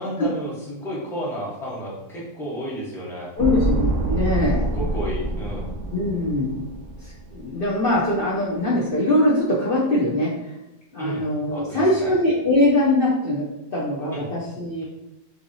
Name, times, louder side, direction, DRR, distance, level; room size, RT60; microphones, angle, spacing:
voice 1, 0.0-3.3 4.7-5.7 11.0-11.2 11.5-12.1 14.1-14.2, equal, ahead, -6 dB, 0.6 m, -32 dB
voice 2, 3.3-4.7 5.9-6.6 7.0-10.6 10.9-14.8, left 1 dB, 85° left, -6 dB, 0.5 m, -22 dB
sound 1, 3.4-7.7 7.9-8.0, right 2 dB, 85° right, 1.3 m, -26 dB
4.7 x 2.8 x 2.7 m, 0.92 s
omnidirectional pair, 2.0 m